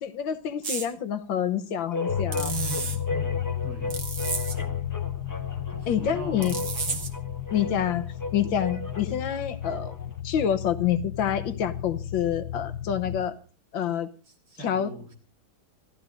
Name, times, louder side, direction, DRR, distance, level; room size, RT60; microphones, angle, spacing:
voice 1, 0.0-2.5 5.9-6.6 7.5-10.0 10.2-13.4 13.7-14.1 14.6-14.9, left 9 dB, 75° left, 12 dB, 1.7 m, -27 dB
sound 1, 0.6-0.9 2.3-3.0 3.9-4.6 6.4-7.2, right 5 dB, 55° right, 1.9 m, -32 dB
sound 2, 1.9-10.1, left 2 dB, 15° left, 0.6 m, -36 dB
sound 3, 2.1-13.2, left 11 dB, 55° left, 1.1 m, -33 dB
voice 2, 2.4-4.0 4.6-4.9 5.7-7.1 7.6-7.7 14.5-15.1, right 1 dB, 85° right, 3 dB, 4.7 m, -39 dB
27.0 x 13.5 x 2.6 m, 0.36 s
omnidirectional pair, 2.2 m